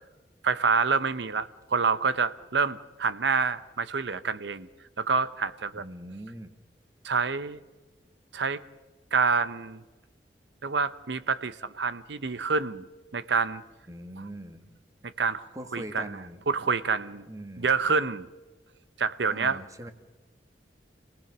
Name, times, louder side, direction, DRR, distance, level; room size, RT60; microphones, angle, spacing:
voice 1, 0.4-4.7 5.0-5.8 7.0-7.6 8.3-8.6 9.1-9.8 10.6-12.9 13.1-13.6 15.2-15.5 15.7-16.0 16.5-17.3 17.6-18.3 19.0-19.6, right 5 dB, 80° right, 15 dB, 0.8 m, -27 dB
voice 2, 5.7-6.5 13.9-14.8 15.5-16.4 17.3-17.7 19.2-19.9, right 1 dB, 20° right, 8 dB, 1.6 m, -41 dB
27.0 x 19.0 x 6.1 m, 1.2 s
head